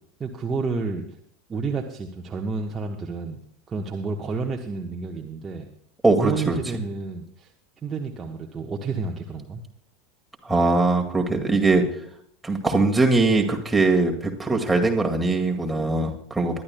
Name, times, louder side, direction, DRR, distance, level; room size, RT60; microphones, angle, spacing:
voice 1, 0.2-1.0 1.5-3.4 3.7-5.7 6.2-7.5 7.8-9.6, right 4 dB, 20° right, 1 dB, 1.2 m, -30 dB
voice 2, 6.0-6.6 10.5-11.8 12.4-16.6, right 3 dB, 5° right, 1 dB, 2.1 m, -21 dB
21.5 x 12.5 x 2.3 m, 0.66 s
figure-of-eight pair, 80°, 0 cm